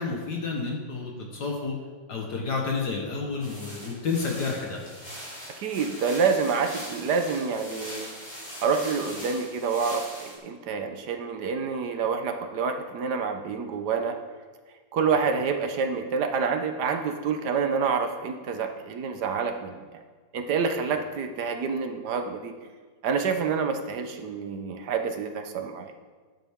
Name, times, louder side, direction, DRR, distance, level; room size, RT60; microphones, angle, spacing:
voice 1, 0.0-1.8 2.1-4.8, left 4 dB, 65° left, 0 dB, 1.8 m, -30 dB
sound 1, 3.4-10.4, equal, 20° left, 3.0 m, -41 dB
voice 2, 5.6-8.1 8.6-14.2 14.9-19.8 20.3-22.5 23.0-25.9, right 5 dB, 65° right, 6 dB, 1.3 m, -27 dB
12.5 x 9.1 x 3.6 m, 1.5 s
omnidirectional pair, 2.0 m